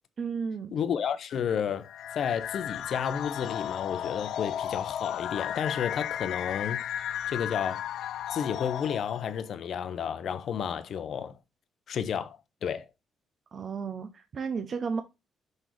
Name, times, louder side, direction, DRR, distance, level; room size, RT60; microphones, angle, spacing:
voice 1, 0.2-0.8 13.5-15.0, right 5 dB, 45° right, 0.7 m, -33 dB
voice 2, 0.7-6.9 7.3-7.8 8.3-11.4 11.9-12.9, left 8 dB, 60° left, 0.7 m, -31 dB
sound 1, 1.8-9.4, left 10 dB, 75° left, 0.3 m, -34 dB
5.3 x 4.1 x 4.5 m
cardioid pair, 110°, 0 cm